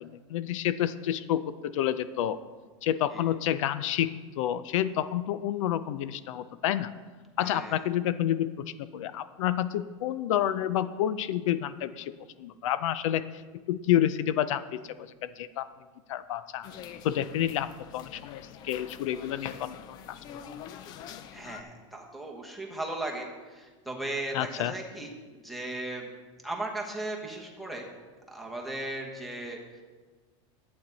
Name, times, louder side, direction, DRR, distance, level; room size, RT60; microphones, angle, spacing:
voice 1, 0.0-2.4 2.8-6.9 7.4-8.5 8.8-12.1 12.4-13.4 13.7-15.7 16.1-16.7 17.0-20.4 21.1-21.2 24.3-24.7, left 11 dB, 80° left, 13 dB, 0.5 m, -29 dB
voice 2, 7.4-7.8 21.3-25.1 25.4-26.1 26.4-27.9 28.3-29.8, right 2 dB, ahead, 1 dB, 1.2 m, -37 dB
sound 1, 16.6-21.6, left 9 dB, 25° left, 0.3 m, -45 dB
11.5 x 8.7 x 4.0 m, 1.4 s
supercardioid pair, 170°, 16 cm